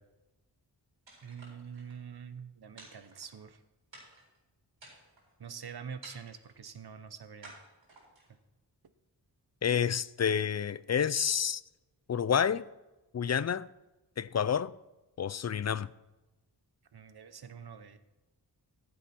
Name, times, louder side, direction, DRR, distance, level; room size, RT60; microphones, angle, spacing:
sound 1, 1.1-2.0 2.8-3.6 3.9-4.4 4.8-5.3 6.0-6.6 7.4-8.3, right 2 dB, 85° right, 4.4 m, -53 dB
voice 1, 1.2-3.6 5.4-7.6 16.9-18.0, right 7 dB, 60° right, 1.0 m, -45 dB
voice 2, 9.6-11.6 12.1-12.6 13.1-13.7 14.2-14.7 15.2-15.9, left 8 dB, 40° left, 0.4 m, -29 dB
14.5 x 7.5 x 4.4 m
wide cardioid pair, 90°, 44 cm